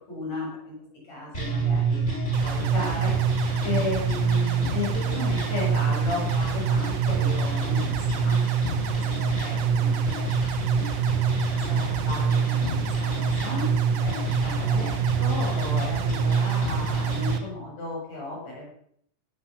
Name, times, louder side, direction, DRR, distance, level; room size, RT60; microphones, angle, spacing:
voice 1, 0.1-0.7 1.0-2.0 2.4-3.1 3.6-8.4 8.6-8.8 9.4-11.0 11.5-18.7, left 2 dB, 65° left, -3 dB, 8.2 m, -35 dB
sound 1, 1.3-17.3, right 5 dB, 20° left, 6.9 m, -25 dB
sound 2, 2.3-17.4, right 8 dB, 80° right, 2.7 m, -37 dB
17.0 x 11.5 x 6.7 m, 0.68 s
omnidirectional pair, 3.4 m